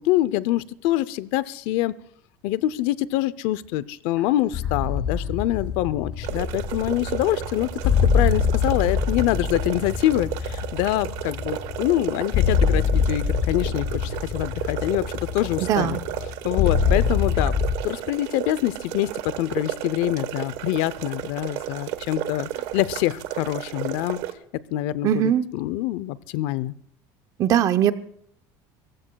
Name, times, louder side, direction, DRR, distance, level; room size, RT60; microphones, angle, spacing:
voice 1, 0.0-1.9 2.4-7.7 8.0-15.0 15.3-16.0 16.4-17.5 17.8-24.2 24.7-26.7, left 15 dB, 70° left, 18 dB, 0.6 m, -25 dB
sound 1, 4.1-5.7 6.1-10.1 10.5-11.9, left 4 dB, 10° right, 5.1 m, -46 dB
sound 2, 4.5-17.8, left 6 dB, 45° left, 1.3 m, -25 dB
sound 3, 6.2-24.3, right 13 dB, 75° right, 1.2 m, -33 dB
voice 2, 15.7-16.0 25.0-25.5 27.4-27.9, right 10 dB, 40° right, 12 dB, 0.7 m, -20 dB
28.0 x 15.5 x 2.3 m, 0.66 s
cardioid pair, 165°, 9 cm